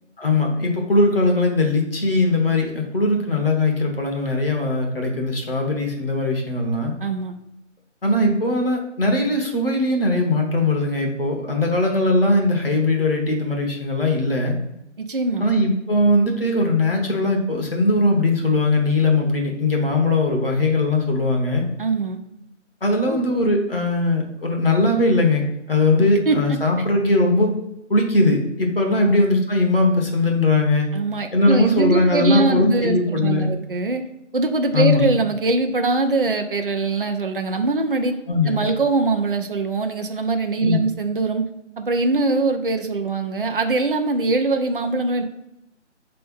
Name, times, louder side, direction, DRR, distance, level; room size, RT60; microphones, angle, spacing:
voice 1, 0.2-6.9 8.0-14.5 15.4-21.6 22.8-25.4 25.7-27.5 27.9-30.9 31.3-33.5 34.7-35.1 38.3-38.6 40.6-40.8, left 2 dB, 50° left, 1 dB, 1.2 m, -20 dB
voice 2, 7.0-7.3 15.0-15.5 21.8-22.2 23.1-23.2 26.3-26.4 28.9-29.2 30.9-34.0 34.3-38.1 38.5-41.4 41.8-45.2, right 3 dB, 45° right, 5 dB, 0.5 m, -22 dB
5.2 x 3.3 x 5.4 m, 0.84 s
figure-of-eight pair, 180°, 37 cm